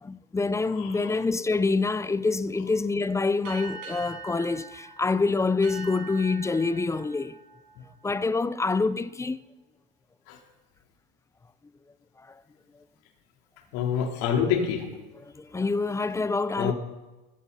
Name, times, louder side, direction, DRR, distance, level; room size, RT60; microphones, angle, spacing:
voice 1, 0.0-7.4 8.0-9.4 15.2-16.7, left 3 dB, 10° left, 0.4 m, -26 dB
sound 1, 3.4-8.5, right 5 dB, 70° right, 7.9 m, -44 dB
voice 2, 13.7-14.9 16.6-16.7, left 7 dB, 65° left, 3.9 m, -26 dB
21.0 x 16.0 x 4.2 m
supercardioid pair, 115°, 32 cm